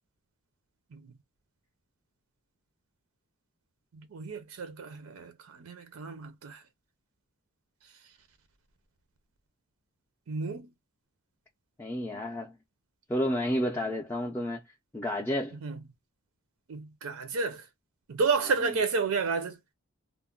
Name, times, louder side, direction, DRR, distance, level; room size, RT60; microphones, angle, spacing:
voice 1, 3.9-6.6 10.3-10.7 15.6-15.8 16.7-17.7 18.1-19.6, right 4 dB, 70° right, 0.5 m, -31 dB
voice 2, 11.8-12.5 13.1-14.6 14.9-15.6, equal, 10° left, 0.4 m, -30 dB
2.2 x 2.0 x 3.6 m
head